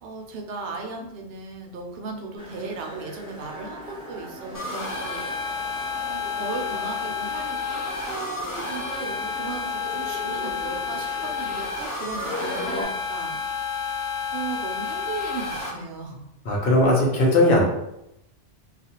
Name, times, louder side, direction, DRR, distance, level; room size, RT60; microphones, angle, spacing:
voice 1, 0.0-5.3 6.1-13.4 14.3-16.2, right 4 dB, 65° right, 1 dB, 0.7 m, -36 dB
sound 1, 2.4-12.8, left 1 dB, 5° right, 0.6 m, -39 dB
sound 2, 4.5-15.7, left 5 dB, 30° left, 0.3 m, -30 dB
voice 2, 16.5-17.6, left 1 dB, 55° left, -3 dB, 0.9 m, -18 dB
2.4 x 2.4 x 2.8 m, 0.84 s
omnidirectional pair, 1.2 m